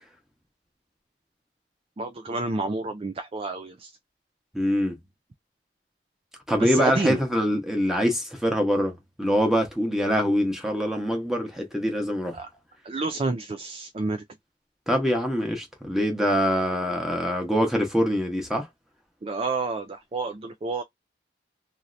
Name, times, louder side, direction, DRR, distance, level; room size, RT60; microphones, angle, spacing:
voice 1, 2.0-3.9 6.6-7.2 12.3-12.5 12.8-14.2 19.2-20.8, right 3 dB, 30° right, 0.4 m, -29 dB
voice 2, 4.5-5.0 6.5-12.4 14.9-18.7, equal, ahead, 1.0 m, -24 dB
3.0 x 2.7 x 2.5 m
head